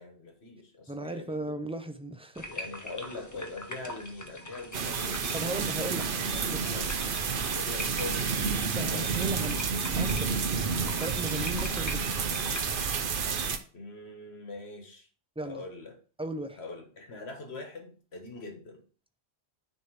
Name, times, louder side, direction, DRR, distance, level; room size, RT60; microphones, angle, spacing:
voice 1, 0.0-1.4 2.5-5.3 5.9-7.0 7.5-8.3 8.7-9.8 13.7-15.1 15.4-16.0 16.6-18.8, left 3 dB, 75° left, 1.7 m, -43 dB
voice 2, 0.9-2.5 5.3-6.2 6.5-6.8 8.6-9.6 9.9-10.4 11.0-12.2 15.4-15.6 16.2-16.6, right 1 dB, 10° right, 0.4 m, -37 dB
sound 1, 2.4-12.9, left 1 dB, 20° left, 0.8 m, -43 dB
sound 2, 4.7-13.6, right 5 dB, 55° right, 0.9 m, -30 dB
9.5 x 3.4 x 4.7 m
omnidirectional pair, 1.1 m